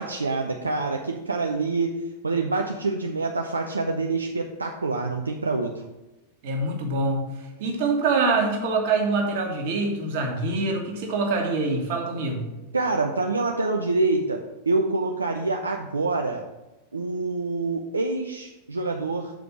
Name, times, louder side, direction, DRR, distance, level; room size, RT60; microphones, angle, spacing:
voice 1, 0.0-2.0 2.2-5.9 12.7-16.4 16.9-19.3, right 3 dB, 75° right, 2 dB, 0.6 m, -26 dB
voice 2, 6.4-12.5, right 3 dB, 50° right, 1 dB, 1.7 m, -25 dB
6.3 x 5.0 x 6.9 m, 1.0 s
figure-of-eight pair, 90°, 0 cm